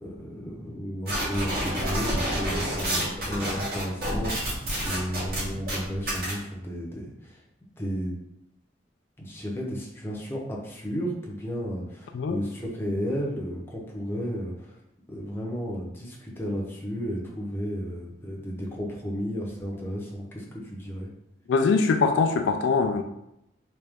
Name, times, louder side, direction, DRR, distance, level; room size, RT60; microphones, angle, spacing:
voice 1, 0.0-7.4 7.8-8.1 9.2-14.8 15.1-21.1, equal, 15° left, -3 dB, 0.7 m, -33 dB
sound 1, 1.1-6.3, right 1 dB, 55° right, 1.5 m, -29 dB
voice 2, 21.5-23.0, left 4 dB, 80° left, 6 dB, 0.3 m, -22 dB
3.2 x 2.9 x 3.5 m, 0.83 s
head